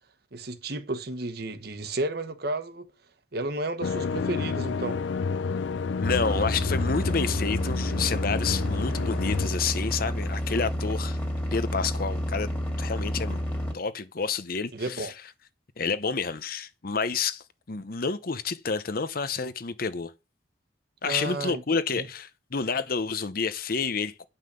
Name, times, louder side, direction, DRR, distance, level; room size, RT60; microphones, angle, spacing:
voice 1, 0.3-2.9 3.3-5.0 14.7-15.1 21.0-21.6 21.9-22.1, right 2 dB, 55° right, 1.2 m, -32 dB
sound 1, 3.8-9.5, left 5 dB, 75° left, 0.4 m, -30 dB
voice 2, 6.0-11.2 11.5-12.5 12.8-13.4 13.7-15.1 15.8-20.1 21.0-24.2, left 5 dB, 50° left, 0.8 m, -29 dB
sound 2, 6.0-13.7, equal, 10° left, 2.2 m, -30 dB
9.6 x 5.7 x 6.8 m
head